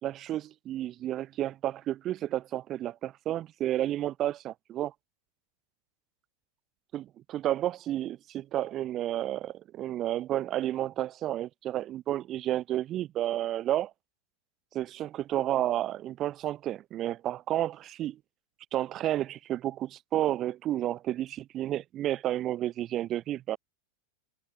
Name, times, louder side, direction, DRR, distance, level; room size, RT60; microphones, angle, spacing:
voice 1, 0.0-4.9 6.9-13.9 14.7-18.2 18.7-23.6, right 13 dB, 30° right, 2.0 m, -31 dB
figure-of-eight pair, 90°, 0 cm